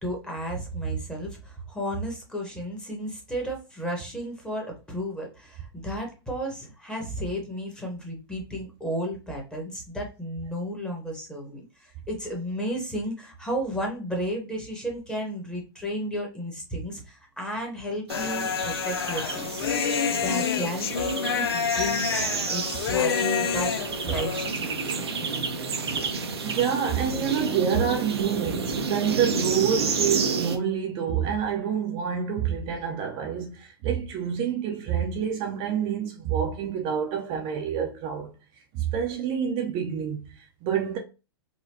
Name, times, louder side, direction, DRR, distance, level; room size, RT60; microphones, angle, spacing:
voice 1, 0.0-23.7 24.0-25.5, equal, 5° left, 1.2 m, -33 dB
Human voice, 18.1-24.5, left 7 dB, 70° left, 0.4 m, -28 dB
sound 1, 18.1-30.6, right 4 dB, 80° right, 0.7 m, -30 dB
voice 2, 26.4-38.3 38.7-41.0, right 8 dB, 40° right, 0.7 m, -27 dB
4.2 x 2.2 x 2.7 m
hypercardioid pair, 110°, 13 cm